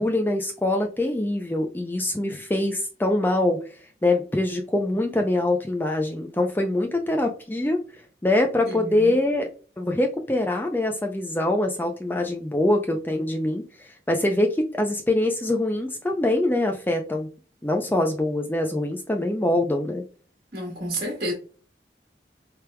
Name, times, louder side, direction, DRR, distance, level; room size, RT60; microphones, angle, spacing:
voice 1, 0.0-3.6 4.0-7.8 8.2-9.5 9.8-17.3 17.6-20.0, left 1 dB, 10° left, 0.4 m, -24 dB
voice 2, 8.6-9.1 20.5-21.3, right 1 dB, 45° right, 1.4 m, -30 dB
4.4 x 3.4 x 2.2 m
head